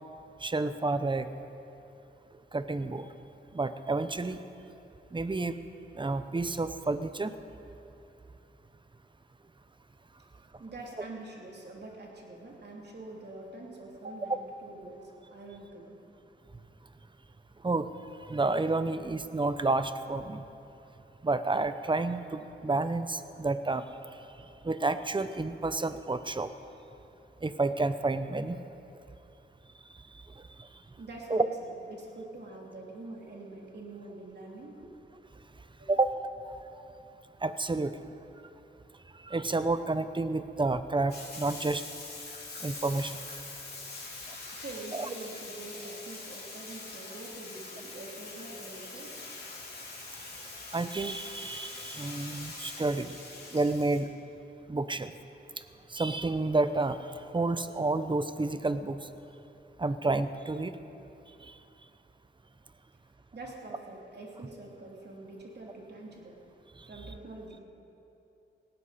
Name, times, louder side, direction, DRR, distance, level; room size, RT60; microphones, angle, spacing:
voice 1, 0.4-1.3 2.5-3.1 3.5-4.4 5.1-5.6 6.0-7.4 17.6-17.9 18.3-20.4 21.2-23.8 24.6-26.5 27.4-28.6 30.6-30.7 31.3-31.5 35.9-36.1 37.4-37.9 39.2-41.8 42.6-43.2 44.9-45.1 50.7-53.1 53.5-54.1 54.7-55.1 55.9-57.0 57.3-59.0 59.8-60.7 61.4-61.5, right 3 dB, 25° right, 11 dB, 0.8 m, -30 dB
voice 2, 10.6-15.9 31.0-34.9 35.8-36.0 44.5-49.1 63.3-66.4 66.9-67.6, right 2 dB, 55° right, -2 dB, 3.2 m, -45 dB
Bathtub (filling or washing), 41.1-54.0, left 3 dB, 50° left, 3.5 m, -43 dB
18.5 x 16.0 x 4.3 m, 2.8 s
cardioid pair, 75°, 21 cm